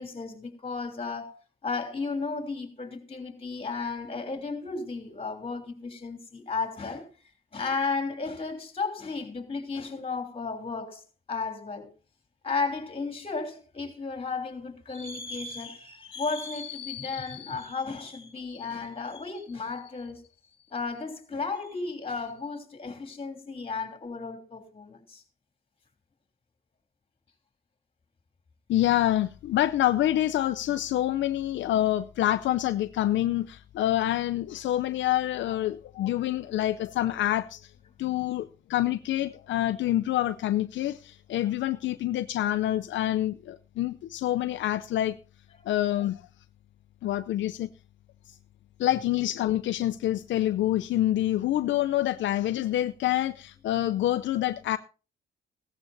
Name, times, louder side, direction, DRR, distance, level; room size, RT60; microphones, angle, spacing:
voice 1, 0.0-1.3 1.6-7.1 7.5-11.0 11.3-11.9 12.4-20.3 20.7-25.2 38.0-38.3 45.6-45.7, left 4 dB, 30° left, 3.1 m, -34 dB
voice 2, 28.7-37.7 38.0-45.2 45.7-46.2 47.0-47.7 48.3-48.4 48.8-54.8, left 13 dB, 70° left, 0.5 m, -27 dB
16.5 x 13.5 x 2.7 m
cardioid pair, 90°, 20 cm